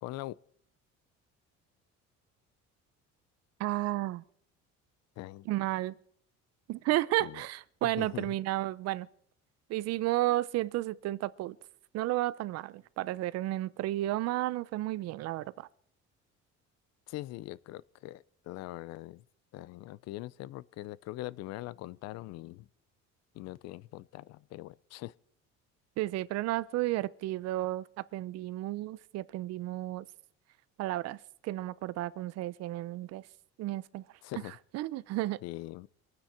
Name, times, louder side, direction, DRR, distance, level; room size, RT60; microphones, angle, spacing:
voice 1, 0.0-0.4 5.2-5.5 7.2-7.4 7.8-8.3 17.1-19.2 19.5-22.7 23.3-25.1 34.2-34.6 35.4-35.9, left 16 dB, 60° left, 0.6 m, -42 dB
voice 2, 3.6-4.2 5.5-5.9 6.7-9.1 9.7-11.6 11.9-15.7 26.0-30.1 30.8-31.2 31.4-33.2 33.6-34.0 34.7-35.4, right 16 dB, 60° right, 0.6 m, -32 dB
24.0 x 9.5 x 4.3 m
cardioid pair, 155°, 29 cm